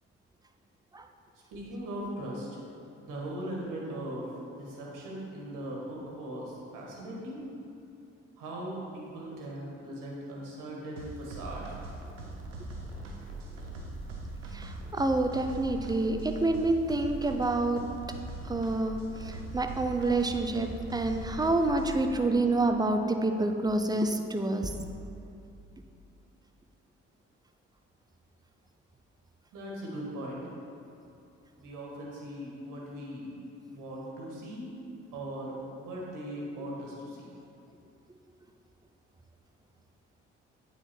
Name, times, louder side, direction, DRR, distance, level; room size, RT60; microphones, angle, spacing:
voice 1, 1.5-2.5 3.0-7.4 8.4-11.8 29.5-30.5 31.6-33.4 33.7-34.7 35.1-37.3, right 1 dB, 60° right, -3 dB, 1.7 m, -39 dB
sound 1, 11.0-22.1, right 2 dB, 85° right, 0.7 m, -41 dB
voice 2, 14.5-17.8 18.5-24.7, right 2 dB, 10° right, 5 dB, 0.6 m, -28 dB
8.7 x 4.1 x 4.5 m, 2.6 s
figure-of-eight pair, 40°, 36 cm